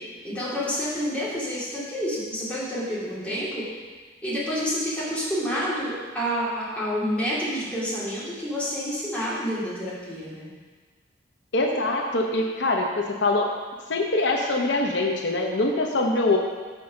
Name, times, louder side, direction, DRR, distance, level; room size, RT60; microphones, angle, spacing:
voice 1, 0.2-3.7 4.2-10.5, equal, 10° left, -9 dB, 2.6 m, -28 dB
voice 2, 11.5-13.5 13.9-16.4, left 2 dB, 85° left, 1 dB, 0.9 m, -23 dB
6.4 x 6.2 x 5.8 m, 1.4 s
head